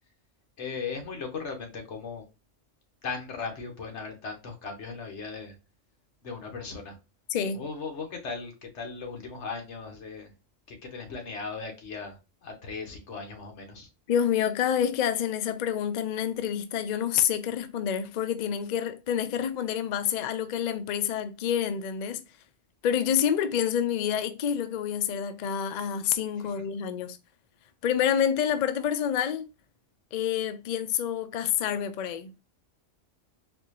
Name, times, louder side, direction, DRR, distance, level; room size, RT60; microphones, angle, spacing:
voice 1, 0.6-2.2 3.0-5.5 6.2-7.0 7.5-10.3 10.7-13.9 26.4-26.6, left 5 dB, 65° left, 1.3 m, -37 dB
voice 2, 7.3-7.6 14.1-22.2 22.8-27.2 27.8-29.5 30.1-32.3, left 9 dB, 85° left, 0.3 m, -28 dB
4.1 x 2.6 x 2.8 m
omnidirectional pair, 1.3 m